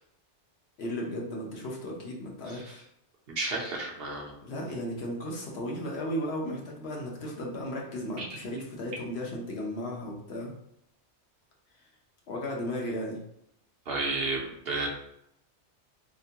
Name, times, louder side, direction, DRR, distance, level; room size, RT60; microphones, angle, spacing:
voice 1, 0.8-2.9 4.4-10.5 12.3-13.2, equal, 65° left, -1 dB, 1.0 m, -35 dB
voice 2, 3.4-4.3 8.2-8.3 13.9-14.9, right 3 dB, 60° right, 0 dB, 0.9 m, -32 dB
3.3 x 2.9 x 2.8 m, 0.75 s
omnidirectional pair, 1.2 m